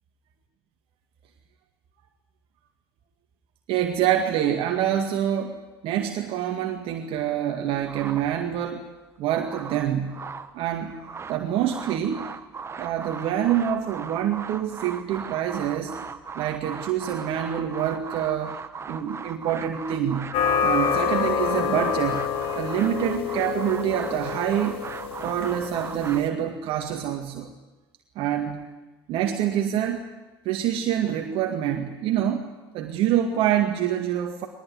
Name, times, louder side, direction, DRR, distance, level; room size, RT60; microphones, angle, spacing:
voice 1, 3.7-8.9 9.2-10.3 10.5-11.0 11.3-12.3 12.8-16.0 16.4-18.6 18.9-24.8 25.2-27.5 28.2-28.6 29.1-30.1 30.5-34.5, right 10 dB, 45° right, 4 dB, 2.0 m, -26 dB
sound 1, 7.8-8.7 9.2-10.5 10.9-26.2, right 5 dB, 20° right, 1.4 m, -38 dB
sound 2, 20.3-26.3, left 7 dB, 45° left, 1.8 m, -27 dB
21.0 x 20.5 x 9.5 m, 1.1 s
figure-of-eight pair, 75°, 13 cm